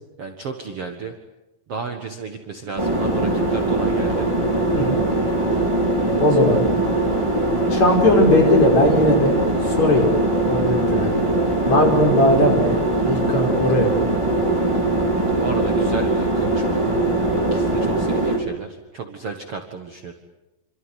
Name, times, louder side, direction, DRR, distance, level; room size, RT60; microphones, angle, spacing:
voice 1, 0.2-1.1 1.7-4.3 15.4-17.0 17.5-20.1, right 5 dB, 50° right, 5 dB, 2.1 m, -33 dB
sound 1, 2.8-18.4, right 2 dB, 10° right, 4.0 m, -21 dB
voice 2, 6.2-6.7 7.7-9.4 9.7-10.1 10.5-11.1 11.7-12.8 13.0-14.0, left 1 dB, 45° left, 3 dB, 6.5 m, -18 dB
27.5 x 26.0 x 8.2 m, 0.98 s
omnidirectional pair, 4.5 m